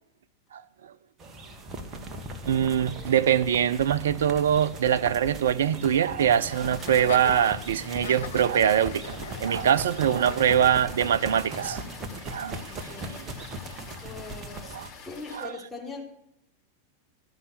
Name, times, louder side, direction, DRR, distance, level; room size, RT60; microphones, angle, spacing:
sound 1, 1.2-14.9, right 1 dB, 25° right, 1.2 m, -39 dB
voice 1, 2.5-11.8 12.3-12.7 14.7-14.9 15.4-15.5, right 9 dB, 60° right, 0.5 m, -23 dB
sound 2, 6.5-15.5, left 5 dB, 45° left, 4.1 m, -47 dB
Laughter, 6.8-11.8, left 8 dB, 60° left, 0.6 m, -42 dB
voice 2, 12.7-13.2 14.0-14.8 15.0-16.0, left 3 dB, 15° left, 2.9 m, -41 dB
12.0 x 5.6 x 8.3 m
figure-of-eight pair, 90°, 0 cm